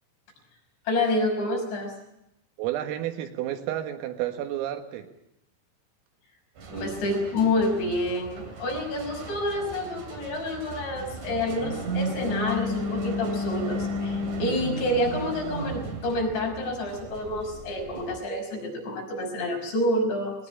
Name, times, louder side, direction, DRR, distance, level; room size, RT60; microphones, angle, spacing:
voice 1, 0.9-1.9 6.7-20.3, left 1 dB, 60° left, 1 dB, 7.7 m, -28 dB
voice 2, 2.6-5.1, right 12 dB, 85° right, 6 dB, 4.2 m, -31 dB
sound 1, 6.6-18.2, equal, 45° right, 4.0 m, -34 dB
20.5 x 18.5 x 8.8 m, 0.85 s
omnidirectional pair, 5.8 m